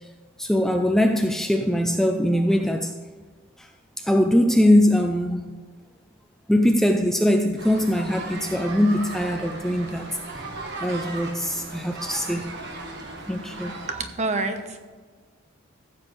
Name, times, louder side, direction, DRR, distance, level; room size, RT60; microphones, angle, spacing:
voice 1, 0.4-2.9 3.6-3.7 4.0-5.5 6.5-10.1 10.8-12.6 13.3-13.8, left 1 dB, ahead, 4 dB, 0.4 m, -21 dB
sound 1, 7.6-13.9, right 2 dB, 55° right, 1.5 m, -37 dB
voice 2, 13.9-14.8, right 3 dB, 35° right, 6 dB, 1.0 m, -27 dB
15.0 x 7.6 x 3.3 m, 1.4 s
head